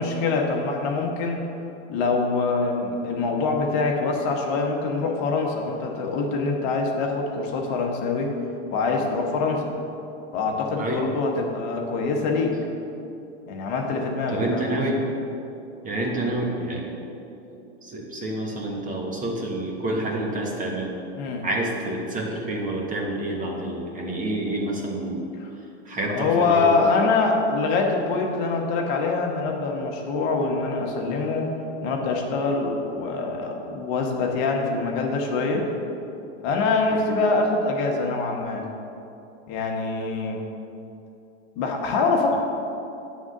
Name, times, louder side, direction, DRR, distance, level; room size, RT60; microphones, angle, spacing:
voice 1, 0.0-1.5 1.9-8.3 8.7-9.7 10.3-12.6 13.5-14.8 21.2-21.5 25.4-25.5 26.1-31.5 31.8-35.7 36.4-38.7 39.5-40.4 41.6-42.3, left 3 dB, 55° left, 1 dB, 1.1 m, -24 dB
voice 2, 10.8-11.1 14.3-15.0 15.8-16.9 17.8-20.9 21.4-25.3 25.8-26.8 36.9-37.2, right 1 dB, 25° right, -1 dB, 1.3 m, -28 dB
8.3 x 3.7 x 6.5 m, 2.8 s
supercardioid pair, 120°, 34 cm